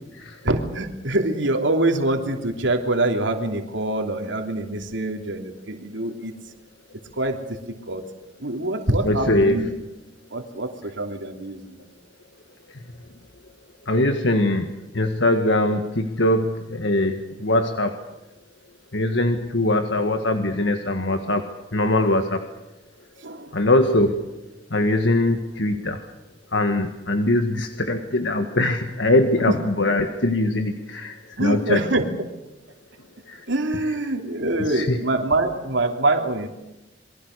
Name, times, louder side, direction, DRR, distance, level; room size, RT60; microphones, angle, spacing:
voice 1, 0.4-6.3 7.2-8.0 8.4-9.7 10.3-11.8 23.2-23.5 29.5-29.6 31.4-32.0 33.5-36.5, right 2 dB, 80° right, 4 dB, 3.0 m, -25 dB
voice 2, 9.0-9.7 12.7-12.8 13.9-18.0 18.9-22.4 23.5-24.2 24.7-26.1 26.5-31.8 33.3-33.5 34.7-35.0, left 1 dB, 70° left, 6 dB, 1.8 m, -22 dB
28.0 x 23.0 x 6.6 m, 0.99 s
head